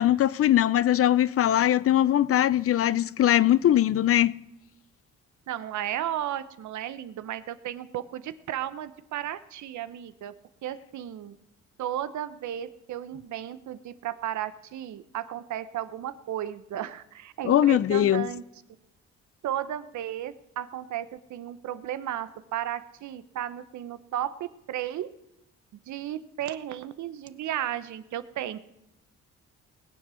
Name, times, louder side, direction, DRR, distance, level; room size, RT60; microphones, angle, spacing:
voice 1, 0.0-4.4 17.4-18.3, left 12 dB, 50° left, 0.5 m, -21 dB
voice 2, 5.5-10.3 10.6-11.4 11.8-18.4 19.4-25.1 25.9-28.6, right 11 dB, 70° right, 0.9 m, -34 dB
20.0 x 7.5 x 6.3 m
cardioid pair, 90°, 30 cm